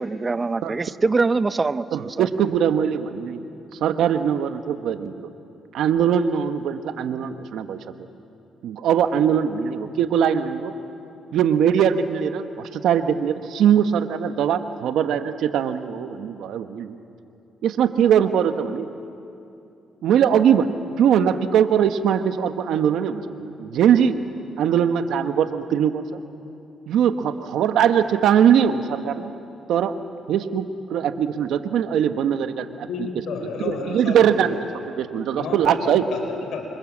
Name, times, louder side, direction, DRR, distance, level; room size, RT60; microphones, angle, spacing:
voice 1, 0.0-2.3, right 3 dB, 30° right, 13 dB, 0.8 m, -23 dB
voice 2, 1.9-3.4 3.8-5.3 5.7-7.8 8.6-10.7 11.3-16.9 17.6-18.9 20.0-24.2 24.6-26.2 26.9-29.3 29.7-29.9 30.3-30.6 30.9-32.9 33.6-34.5 34.9-36.0, right 8 dB, 80° right, 8 dB, 1.3 m, -21 dB
voice 3, 32.9-34.8 35.4-36.7, left 4 dB, 75° left, 4 dB, 4.7 m, -31 dB
28.5 x 25.5 x 7.4 m, 2.7 s
cardioid pair, 90°, 0 cm